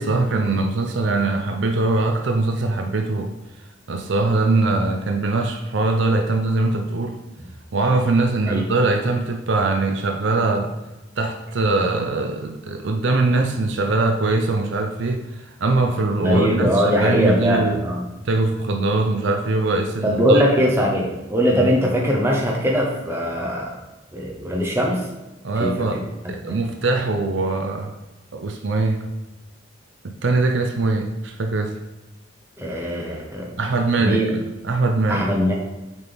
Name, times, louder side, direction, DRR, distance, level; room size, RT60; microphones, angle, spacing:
voice 1, 0.0-3.4 3.9-7.2 7.7-10.7 11.2-17.8 18.2-20.4 21.5-21.7 25.4-28.0 28.3-29.2 30.0-31.8 33.6-35.3, right 3 dB, 65° right, 5 dB, 0.5 m, -22 dB
voice 2, 16.2-18.0 20.0-23.7 24.1-25.0 25.6-26.0 26.5-26.6 32.6-33.5 34.0-34.4 35.1-35.5, equal, 10° right, -2 dB, 1.0 m, -21 dB
6.9 x 4.3 x 3.5 m, 1.1 s
head